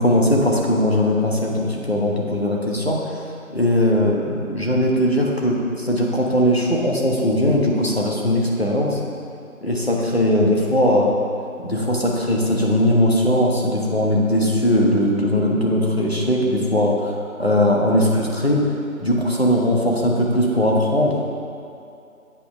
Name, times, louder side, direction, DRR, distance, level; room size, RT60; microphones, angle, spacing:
voice 1, 0.0-3.2 3.5-9.0 9.6-11.1 11.6-17.1 17.4-18.6 19.0-21.2, left 1 dB, 45° left, -2 dB, 1.1 m, -19 dB
8.7 x 5.6 x 5.1 m, 2.6 s
figure-of-eight pair, 175°, 42 cm